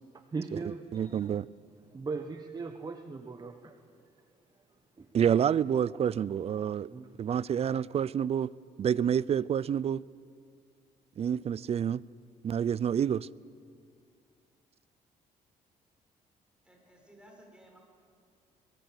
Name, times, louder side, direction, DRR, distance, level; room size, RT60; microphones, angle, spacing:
voice 1, 0.1-1.3 1.9-3.8 5.0-5.1 6.9-7.1, right 4 dB, 25° right, 1.2 m, -39 dB
voice 2, 0.9-1.5 5.1-6.9 7.2-8.5 8.8-10.0 11.2-12.0 12.4-13.3, right 8 dB, 45° right, 0.5 m, -28 dB
voice 3, 16.6-17.8, right 1 dB, 5° right, 7.1 m, -56 dB
23.5 x 21.0 x 8.1 m
cardioid pair, 100°, 15 cm